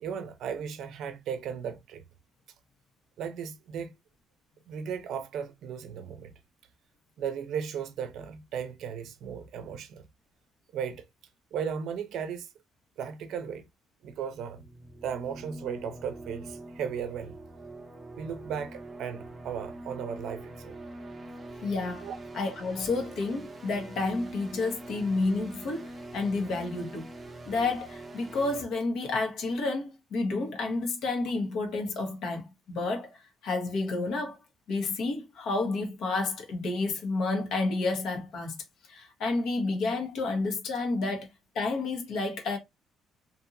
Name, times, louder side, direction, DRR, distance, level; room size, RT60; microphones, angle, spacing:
voice 1, 0.0-2.0 3.2-3.9 4.7-6.3 7.2-10.0 10.7-11.0 11.5-12.5 13.0-13.7 14.0-14.7 15.0-17.3 18.2-20.8 22.0-22.2, right 7 dB, 70° right, 0.5 m, -36 dB
sound 1, 14.5-28.6, right 2 dB, 25° right, 0.6 m, -44 dB
voice 2, 21.6-22.1 22.3-27.1 27.5-33.1 33.4-34.4 34.7-38.5 38.9-41.3 41.5-42.6, left 3 dB, 70° left, 1.1 m, -30 dB
2.8 x 2.6 x 2.5 m
cardioid pair, 115°, 0 cm